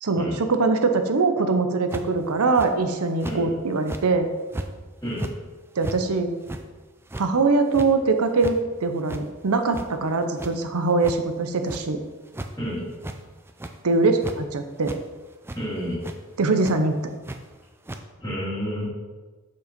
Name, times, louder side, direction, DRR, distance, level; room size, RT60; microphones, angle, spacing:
voice 1, 0.0-4.3 5.8-6.3 7.2-12.0 13.8-14.9 16.4-17.2, right 3 dB, 80° right, 7 dB, 0.7 m, -22 dB
sound 1, 1.9-2.2 2.6-2.7 3.2-3.4 3.8-4.1 4.5-4.7 5.1-5.3 5.8-6.0 6.4-6.6 7.0-7.3 7.7-7.9 8.3-8.6 9.1-9.2 9.6-10.1 10.4-10.5 11.0-11.2 11.7-11.8 12.3-12.5 12.9-13.2 13.5-13.8 14.2-14.4 14.8-15.0 15.4-15.6 16.0-16.2 16.6-16.7 17.2-17.4 17.9-18.0, right 1 dB, 10° right, 0.4 m, -34 dB
voice 2, 15.5-16.0 18.2-18.9, equal, 15° left, -12 dB, 2.1 m, -30 dB
6.7 x 5.4 x 5.1 m, 1.3 s
head